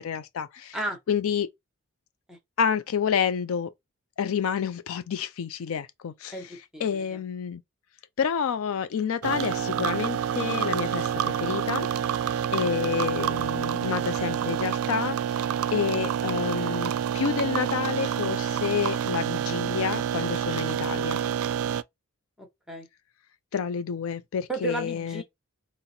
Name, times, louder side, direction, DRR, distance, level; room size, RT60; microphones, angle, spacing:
voice 1, 0.0-0.8 1.1-1.5 2.6-3.7 4.2-6.4 6.8-7.6 8.2-11.9 12.5-15.4 15.7-21.2 23.5-25.2, left 7 dB, 65° left, 0.4 m, -29 dB
voice 2, 6.3-7.2 22.4-22.9 24.5-25.2, right 2 dB, 5° right, 0.9 m, -34 dB
sound 1, 9.2-21.8, right 8 dB, 70° right, 0.3 m, -28 dB
3.9 x 2.1 x 4.1 m
head